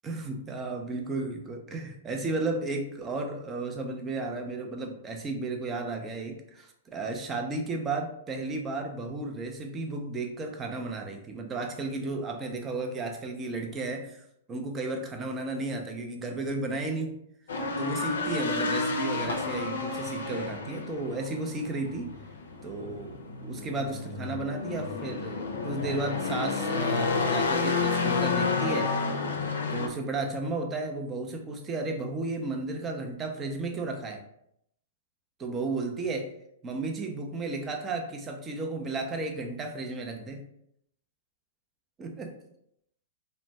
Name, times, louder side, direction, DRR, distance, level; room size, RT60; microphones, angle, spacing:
voice 1, 0.0-14.2 14.5-17.2 17.8-22.1 22.6-28.9 29.7-34.2 35.4-36.3 36.6-40.4 42.0-42.3, right 3 dB, 20° right, 3 dB, 0.5 m, -33 dB
sound 1, 17.5-29.9, left 4 dB, 75° left, 0.4 m, -30 dB
2.5 x 2.1 x 3.1 m, 0.74 s
hypercardioid pair, 115°, 0 cm